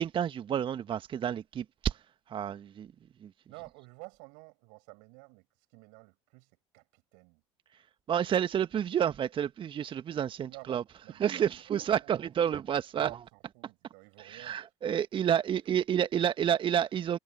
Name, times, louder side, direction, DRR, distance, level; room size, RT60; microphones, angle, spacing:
voice 1, 0.0-2.0 2.3-2.9 3.2-3.3 8.1-10.8 11.2-13.1 14.3-17.2, right 9 dB, 35° right, 1.7 m, -29 dB
voice 2, 3.5-5.5 5.7-7.4 10.4-10.8 11.0-12.5 12.9-14.6, right 34 dB, 55° right, 6.1 m, -51 dB
figure-of-eight pair, 70°, 16 cm